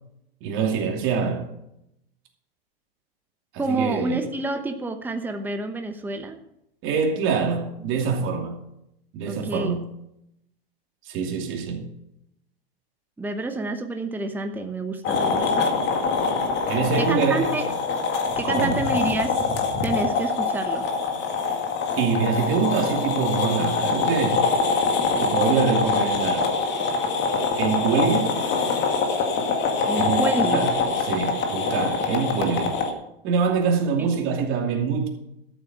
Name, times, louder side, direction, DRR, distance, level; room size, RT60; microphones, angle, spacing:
voice 1, 0.4-1.4 3.5-4.2 6.8-8.6 9.1-9.8 11.0-11.9 16.7-17.5 18.4-18.8 22.0-24.5 25.2-26.5 27.6-28.4 30.0-30.2 30.4-30.7 31.0-32.8 33.2-35.1, right 6 dB, 40° right, 2.6 m, -25 dB
voice 2, 3.6-6.4 9.2-9.8 13.2-15.7 17.0-17.7 18.4-19.5 19.8-20.9 29.9-30.7 34.0-34.1, right 2 dB, 5° right, 1.0 m, -28 dB
sound 1, 15.0-32.9, left 4 dB, 35° left, 2.0 m, -24 dB
13.0 x 7.8 x 5.9 m
hypercardioid pair, 120°, 31 cm